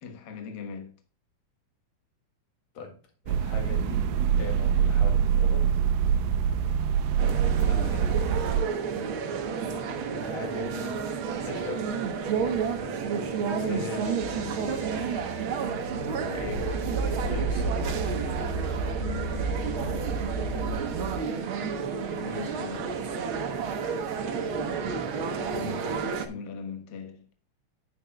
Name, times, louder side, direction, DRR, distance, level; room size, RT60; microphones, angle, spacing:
voice 1, 0.0-1.0 7.3-8.5 18.7-21.0 22.2-23.1 24.4-24.9 26.3-27.3, left 5 dB, 85° left, 0.9 m, -41 dB
voice 2, 3.2-4.1 4.4-5.7 10.1-11.9 12.3-15.2 16.1-17.9 25.6-25.9, left 4 dB, 55° left, 3.1 m, -41 dB
sound 1, 3.3-8.6, right 8 dB, 90° right, 2.3 m, -24 dB
sound 2, 7.2-26.3, right 6 dB, 70° right, 1.2 m, -31 dB
sound 3, 14.2-21.2, right 3 dB, 50° right, 2.8 m, -33 dB
10.0 x 9.2 x 2.3 m
omnidirectional pair, 3.9 m